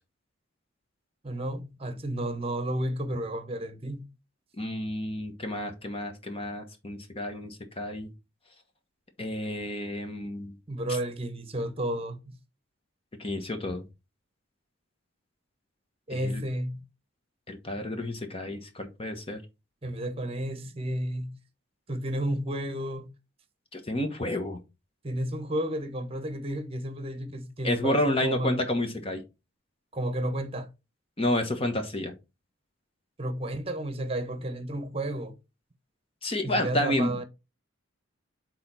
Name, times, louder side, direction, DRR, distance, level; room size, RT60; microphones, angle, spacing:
voice 1, 1.2-4.0 10.7-12.2 16.1-16.8 19.8-21.4 21.9-23.1 25.0-28.6 29.9-30.7 33.2-35.3 36.4-37.2, right 1 dB, 30° right, 1.0 m, -32 dB
voice 2, 4.6-8.1 9.2-10.5 13.2-13.8 16.1-16.4 17.5-19.4 23.7-24.6 27.6-29.2 31.2-32.1 36.2-37.1, left 1 dB, 25° left, 1.1 m, -30 dB
6.7 x 4.0 x 4.2 m
head